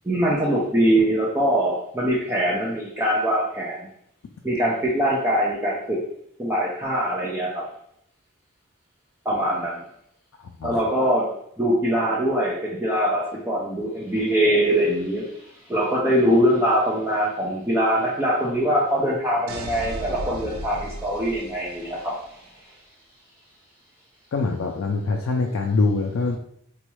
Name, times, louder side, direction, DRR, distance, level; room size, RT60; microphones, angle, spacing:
voice 1, 0.0-3.8 4.4-6.0 6.4-7.7 9.3-9.8 10.6-11.3 11.6-22.4, equal, 10° right, -5 dB, 0.4 m, -23 dB
sound 1, 19.5-22.3, right 1 dB, 85° right, 0.4 m, -36 dB
voice 2, 24.3-26.4, left 3 dB, 70° left, 1 dB, 0.3 m, -24 dB
4.0 x 2.3 x 3.0 m, 0.70 s
head